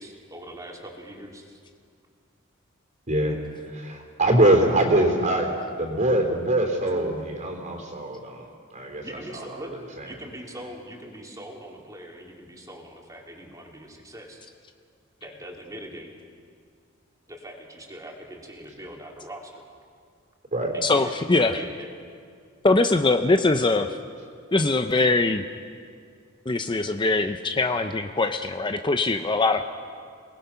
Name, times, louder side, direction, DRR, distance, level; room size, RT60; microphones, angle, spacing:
voice 1, 0.0-1.6 9.0-9.7 10.0-14.4 15.2-16.1 17.3-19.6 20.7-21.9, equal, 15° right, 0 dB, 3.0 m, -42 dB
voice 2, 3.1-3.4 3.6-5.5 5.8-10.1 20.5-20.7, right 1 dB, 40° right, 2 dB, 3.7 m, -24 dB
voice 3, 20.8-21.6 22.6-24.0 24.5-25.4 26.5-29.6, left 3 dB, 25° left, 7 dB, 0.6 m, -22 dB
27.5 x 19.5 x 5.8 m, 2.2 s
head